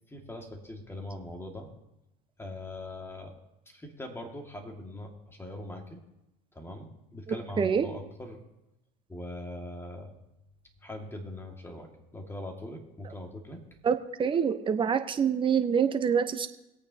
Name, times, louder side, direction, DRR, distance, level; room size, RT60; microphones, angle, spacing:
voice 1, 0.1-1.7 2.4-3.3 3.7-6.0 6.5-8.4 9.1-10.1 10.8-13.6, left 1 dB, 10° left, 2 dB, 2.1 m, -41 dB
voice 2, 7.3-7.9 13.8-16.5, right 7 dB, 25° right, 8 dB, 0.9 m, -26 dB
22.0 x 8.7 x 2.9 m, 0.91 s
supercardioid pair, 105°, 20 cm